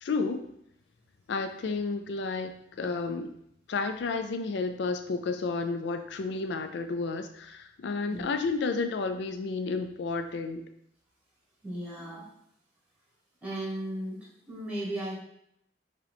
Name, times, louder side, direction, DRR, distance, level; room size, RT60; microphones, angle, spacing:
voice 1, 0.0-0.5 1.3-3.3 3.7-10.6, left 4 dB, 65° left, 7 dB, 0.4 m, -31 dB
voice 2, 11.6-12.3 13.4-14.2 14.5-15.1, right 1 dB, 5° right, -5 dB, 1.4 m, -35 dB
4.7 x 3.0 x 3.4 m, 0.74 s
head